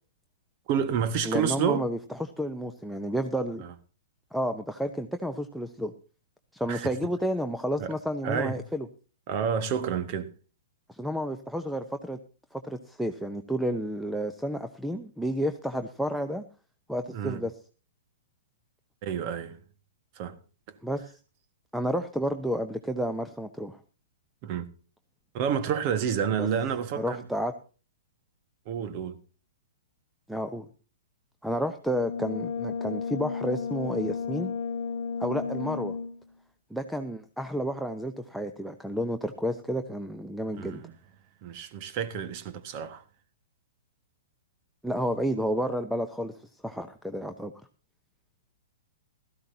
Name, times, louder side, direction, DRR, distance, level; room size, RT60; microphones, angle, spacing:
voice 1, 0.7-1.9 3.6-3.7 6.7-6.9 7.8-7.9 8.2-8.6 9.3-10.3 17.1-17.5 19.0-19.6 20.2-20.4 20.7-20.8 24.4-24.7 25.3-27.2 28.6-29.2 40.6-40.9 41.4-43.0, right 7 dB, 40° right, 1.6 m, -29 dB
voice 2, 1.2-3.6 4.3-5.9 6.5-8.9 10.9-12.2 12.5-16.5 16.9-17.5 20.8-21.1 21.7-23.8 26.4-26.5 27.0-27.5 30.3-30.7 31.4-34.5 35.2-36.0 36.7-40.8 44.8-46.3 46.6-47.5, equal, ahead, 0.8 m, -31 dB
Brass instrument, 31.9-36.3, left 5 dB, 65° left, 1.0 m, -33 dB
16.5 x 13.5 x 2.8 m
figure-of-eight pair, 115°, 0 cm